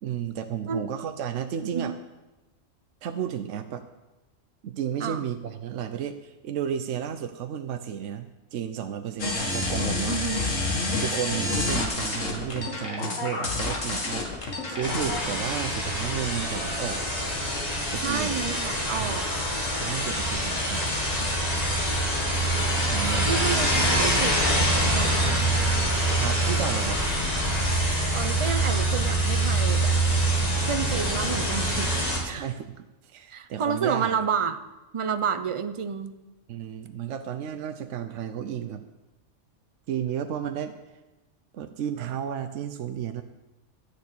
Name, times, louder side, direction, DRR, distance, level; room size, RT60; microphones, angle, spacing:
voice 1, 0.0-2.0 3.0-3.8 4.6-10.2 11.0-17.0 17.9-18.3 19.0-19.2 19.7-21.0 22.6-23.3 26.2-27.0 32.2-32.7 33.0-34.2 36.5-38.8 39.9-40.8 41.5-43.2, right 9 dB, 70° right, 8 dB, 1.0 m, -33 dB
sound 1, 9.2-15.2, left 2 dB, 80° left, 2.1 m, -28 dB
voice 2, 10.1-10.5 18.0-19.2 23.2-24.4 24.9-25.2 28.1-30.0 30.6-32.5 33.3-34.6 34.9-36.1, right 7 dB, 35° right, 9 dB, 0.5 m, -30 dB
sound 2, 14.8-32.2, right 1 dB, 30° left, 2.0 m, -25 dB
sound 3, 23.0-29.6, right 4 dB, 55° right, 1.2 m, -41 dB
12.0 x 6.4 x 8.3 m, 1.1 s
omnidirectional pair, 1.3 m